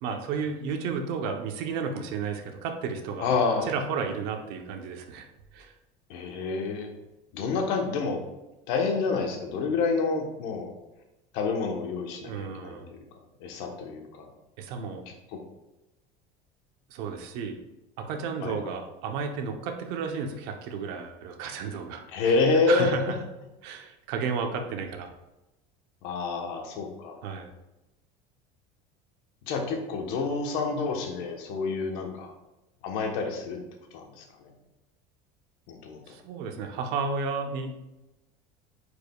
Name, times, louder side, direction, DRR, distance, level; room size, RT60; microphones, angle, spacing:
voice 1, 0.0-3.3 3.6-5.3 5.5-5.7 12.1-12.9 14.6-15.1 16.9-17.6 18.0-23.2 23.6-25.1 27.2-27.5 36.1-37.9, right 5 dB, 60° right, 5 dB, 0.9 m, -33 dB
voice 2, 3.2-3.7 6.1-6.9 7.3-8.2 8.7-10.7 11.3-13.0 13.4-14.3 15.3-15.4 18.4-18.6 22.1-22.9 26.0-27.2 29.5-32.3 32.8-33.6 33.9-34.5 35.7-36.2, left 4 dB, 60° left, 3 dB, 1.2 m, -28 dB
9.5 x 5.0 x 2.4 m, 0.97 s
cardioid pair, 175°, 18 cm